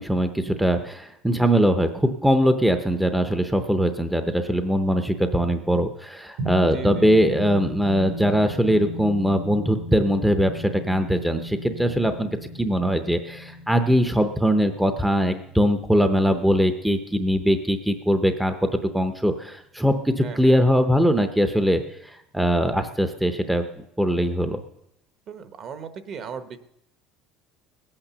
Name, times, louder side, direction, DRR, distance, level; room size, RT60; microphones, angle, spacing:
voice 1, 0.0-12.3 12.6-18.7 18.9-24.6, equal, 5° right, 7 dB, 0.6 m, -21 dB
sound 1, 6.4-17.1, left 1 dB, 75° right, 3.1 m, -37 dB
voice 2, 6.7-7.1 20.2-20.6 25.3-26.6, right 6 dB, 35° right, 11 dB, 0.9 m, -37 dB
19.5 x 8.8 x 6.8 m, 0.82 s
cardioid pair, 165°, 0 cm